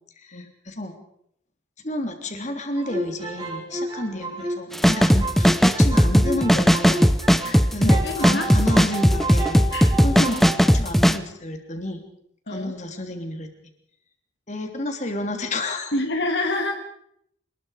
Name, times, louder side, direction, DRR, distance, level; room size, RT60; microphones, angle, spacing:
voice 1, 0.2-0.9 1.8-7.1 7.7-9.6 10.0-12.0 12.5-13.5 14.5-15.9, left 1 dB, 40° left, 5 dB, 3.2 m, -30 dB
sound 1, 2.8-7.6 7.9-10.6, right 2 dB, 25° right, 4.9 m, -31 dB
sound 2, 4.7-11.2, equal, ahead, 0.7 m, -17 dB
voice 2, 7.4-8.5 9.7-9.9 10.2-10.5 12.5-12.7 15.9-16.7, left 2 dB, 65° left, 4 dB, 2.2 m, -28 dB
27.5 x 20.5 x 5.0 m, 0.71 s
head